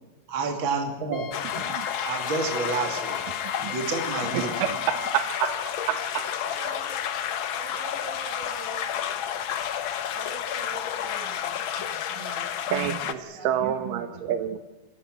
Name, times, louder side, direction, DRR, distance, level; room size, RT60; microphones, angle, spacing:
voice 1, 0.3-1.3 2.0-4.5, right 4 dB, 40° right, 3 dB, 3.0 m, -29 dB
Wind instrument woodwind instrument, 1.1-5.2, left 7 dB, 55° left, 2.1 m, -40 dB
sound 1, 1.3-13.1, left 9 dB, 80° left, 1.1 m, -31 dB
voice 2, 3.4-3.8 4.3-5.5 5.9-6.2 11.8-11.9 12.2-12.3 12.7-14.6, right 10 dB, 90° right, 8 dB, 2.7 m, -28 dB
voice 3, 4.1-4.6 6.4-7.0 7.5-9.2 10.1-11.6 12.1-12.6 13.0-14.5, right 3 dB, 60° right, 2 dB, 6.6 m, -44 dB
27.5 x 15.0 x 9.2 m, 1.2 s
omnidirectional pair, 3.7 m